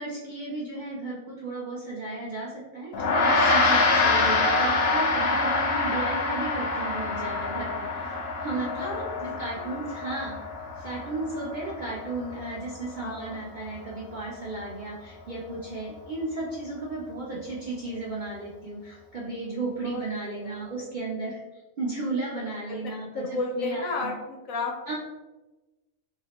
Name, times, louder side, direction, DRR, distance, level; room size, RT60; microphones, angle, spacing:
voice 1, 0.0-8.9 9.2-10.4 10.8-21.4 21.8-24.1 24.9-25.0, right 2 dB, 65° right, -5 dB, 0.4 m, -34 dB
Gong, 2.9-12.6, left 3 dB, 60° left, 0.7 m, -26 dB
voice 2, 8.8-9.8 13.0-13.4 19.8-20.6 22.7-24.7, left 3 dB, 75° left, 1 dB, 1.1 m, -34 dB
2.8 x 2.0 x 3.9 m, 1.1 s
omnidirectional pair, 1.4 m